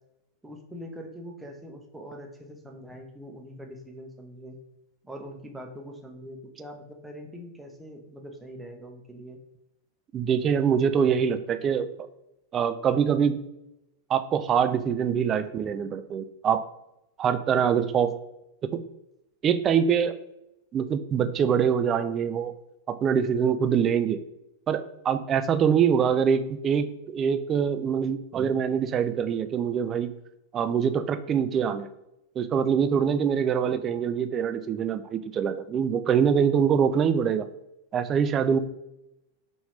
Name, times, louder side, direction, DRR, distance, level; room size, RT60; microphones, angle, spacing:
voice 1, 0.4-4.6 5.0-9.4, equal, 10° right, 2 dB, 0.7 m, -43 dB
voice 2, 10.1-12.1 12.5-13.4 14.1-16.6 17.2-18.1 18.7-18.8 19.4-20.2 20.7-22.5 22.9-24.2 24.7-30.1 30.5-31.9 32.4-37.5 37.9-38.6, right 7 dB, 25° right, 10 dB, 0.3 m, -24 dB
4.8 x 2.6 x 3.3 m, 0.88 s
figure-of-eight pair, 90°, 0 cm